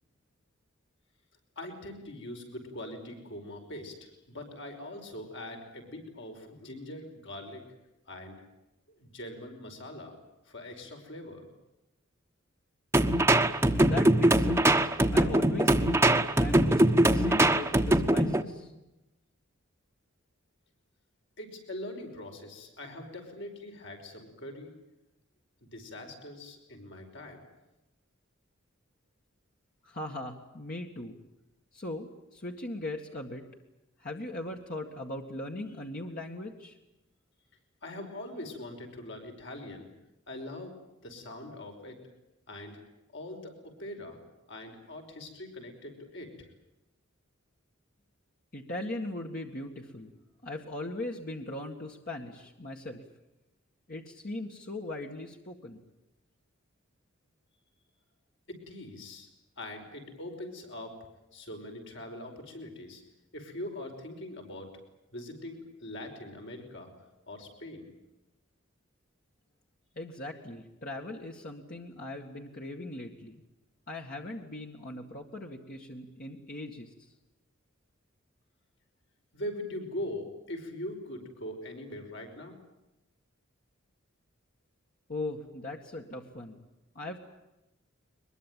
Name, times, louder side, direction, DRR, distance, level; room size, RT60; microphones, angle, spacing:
voice 1, 1.6-7.6 8.1-8.4 9.0-10.2 10.5-11.4 21.4-24.7 25.7-27.4 37.8-39.9 40.3-40.7 41.0-42.0 42.5-42.8 43.1-43.5 43.8-44.2 44.5-46.5 58.5-59.3 59.6-61.0 61.3-63.0 63.3-64.7 65.1-66.9 67.3-67.9 79.3-82.5, left 1 dB, 65° left, 3 dB, 5.3 m, -42 dB
sound 1, 12.9-18.4, right 1 dB, 15° right, 1.2 m, -22 dB
voice 2, 13.8-18.7 29.8-31.2 31.7-33.5 34.0-36.8 48.5-50.1 50.4-53.0 53.9-55.8 70.0-73.4 73.9-77.1 85.1-86.6 87.0-87.2, left 2 dB, 45° left, 1 dB, 2.0 m, -39 dB
23.0 x 22.0 x 9.2 m, 0.95 s
head